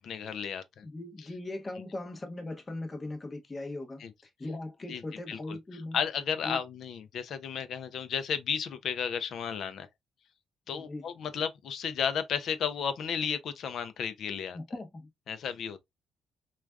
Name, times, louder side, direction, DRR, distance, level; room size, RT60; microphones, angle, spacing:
voice 1, 0.1-0.9 4.0-4.1 4.9-5.0 5.3-5.6 5.9-9.9 10.7-14.6 15.3-15.8, left 7 dB, 65° left, 0.5 m, -33 dB
voice 2, 0.8-6.0 6.4-6.6 10.7-11.1 14.5-15.1, left 2 dB, 25° left, 0.7 m, -39 dB
3.2 x 2.3 x 2.3 m
cardioid pair, 90°, 0 cm